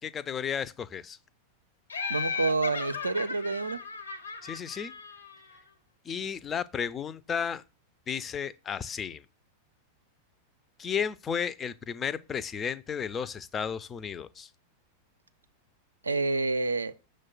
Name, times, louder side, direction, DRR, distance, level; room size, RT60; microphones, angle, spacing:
voice 1, 0.0-1.2 4.4-4.9 6.1-7.6 8.1-9.2 10.8-14.5, left 7 dB, 25° left, 0.3 m, -33 dB
Laughter, 1.9-5.5, left 5 dB, 75° left, 0.5 m, -36 dB
voice 2, 2.1-3.8 16.0-16.9, right 3 dB, 80° right, 0.4 m, -28 dB
6.2 x 2.1 x 3.8 m
figure-of-eight pair, 90°, 0 cm